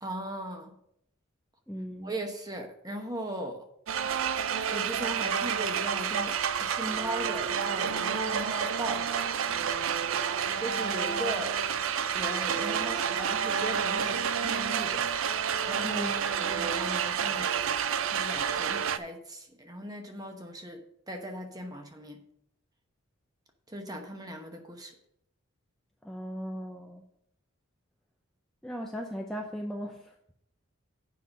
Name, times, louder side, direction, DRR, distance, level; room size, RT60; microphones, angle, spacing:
voice 1, 0.0-0.8 2.0-3.6 4.7-6.3 6.6-9.1 10.6-11.6 12.1-17.5 18.0-22.2 23.7-24.9, right 1 dB, 15° right, 4 dB, 1.0 m, -38 dB
voice 2, 1.7-2.2 15.8-16.2 26.0-27.0 28.6-30.1, equal, ahead, 0 dB, 0.5 m, -37 dB
sound 1, 3.9-19.0, right 7 dB, 65° right, 0.4 m, -29 dB
8.4 x 5.6 x 5.4 m, 0.74 s
head